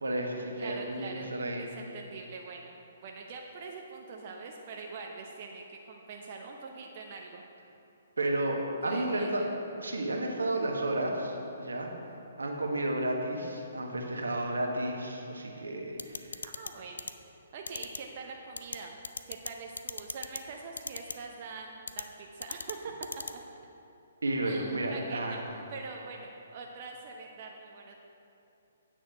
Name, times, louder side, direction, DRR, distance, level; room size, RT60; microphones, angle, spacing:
voice 1, 0.0-1.7 8.2-9.4 9.8-11.9 12.4-16.4 24.2-25.4, right 1 dB, 80° right, 1 dB, 1.2 m, -32 dB
voice 2, 0.6-2.8 3.0-7.4 8.8-9.5 16.4-17.1 17.5-19.0 19.3-22.9 24.4-27.9, right 4 dB, 45° right, 1 dB, 0.7 m, -44 dB
sound 1, 16.0-16.7 17.0-17.1 17.7-18.0 18.6-18.8 19.0-19.5 19.8-20.4 20.8-21.1 21.9-22.0 22.4-22.7 23.0-23.3, left 4 dB, 75° left, 0.4 m, -36 dB
8.9 x 6.3 x 4.5 m, 2.8 s
figure-of-eight pair, 130°, 0 cm